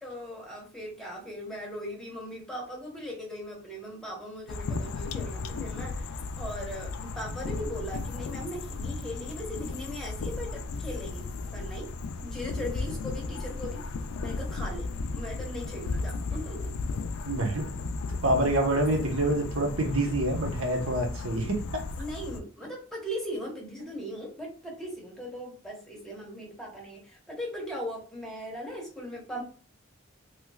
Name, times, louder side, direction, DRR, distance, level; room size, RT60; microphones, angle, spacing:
voice 1, 0.0-11.2 11.5-11.9 12.2-13.8 14.2-16.7 22.0-29.4, equal, ahead, 1.1 m, -39 dB
sound 1, 4.5-22.4, left 3 dB, 80° left, 0.4 m, -35 dB
voice 2, 17.2-17.7 18.2-21.8, right 1 dB, 70° right, 0.9 m, -27 dB
3.1 x 3.0 x 2.3 m
head